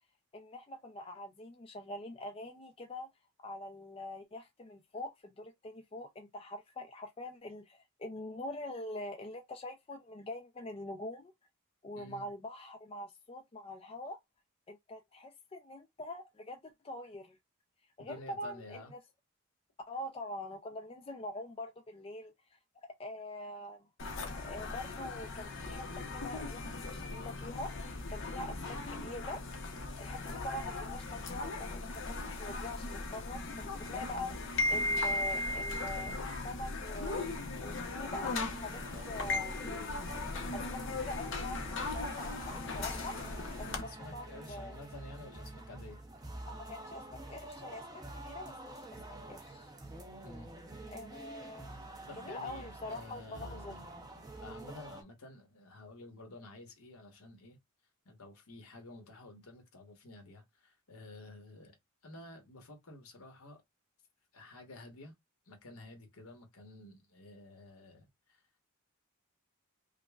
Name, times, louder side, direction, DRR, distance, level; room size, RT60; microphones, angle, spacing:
voice 1, 0.3-3.1 3.4-11.3 11.8-14.2 14.7-17.4 18.0-19.0 19.9-23.9 24.4-29.4 30.0-37.3 37.6-39.6 40.5-43.2 43.6-44.8 46.4-49.7 50.9-51.7 52.2-53.7, left 1 dB, 25° left, 0.4 m, -44 dB
voice 2, 11.9-12.3 18.0-18.9 43.8-46.0 50.2-50.5 52.1-53.9 54.4-57.6 58.0-61.8 62.0-63.6 64.3-65.1 65.5-68.4, left 2 dB, 75° left, 1.1 m, -51 dB
sound 1, 24.0-43.8, left 2 dB, 55° left, 0.7 m, -38 dB
sound 2, 38.4-55.0, right 1 dB, 15° right, 0.7 m, -48 dB
5.1 x 2.2 x 2.3 m
head